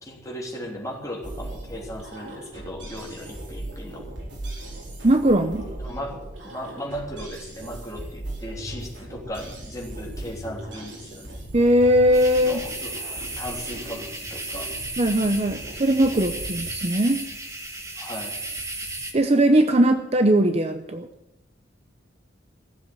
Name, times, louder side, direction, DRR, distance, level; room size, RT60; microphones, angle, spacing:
voice 1, 0.0-4.0 5.8-11.4 12.3-14.7 18.0-18.4, equal, 15° left, -1 dB, 3.3 m, -37 dB
sound 1, 1.2-16.7, right 1 dB, 70° right, 5.1 m, -38 dB
voice 2, 5.0-5.6 11.5-12.6 15.0-17.2 19.1-21.1, right 1 dB, 35° right, 8 dB, 0.7 m, -19 dB
sound 2, 12.1-19.1, right 2 dB, 15° right, 1.8 m, -34 dB
16.0 x 7.9 x 9.3 m, 0.90 s
head